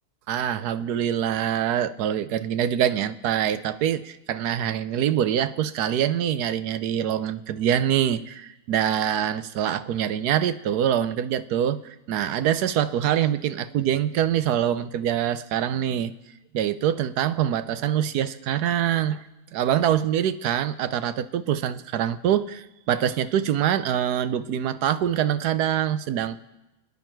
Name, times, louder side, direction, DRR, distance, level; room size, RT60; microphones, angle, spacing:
voice 1, 0.3-16.1 16.5-19.2 19.5-26.4, right 10 dB, 75° right, 13 dB, 1.2 m, -24 dB
28.0 x 9.6 x 4.6 m, 1.0 s
omnidirectional pair, 1.7 m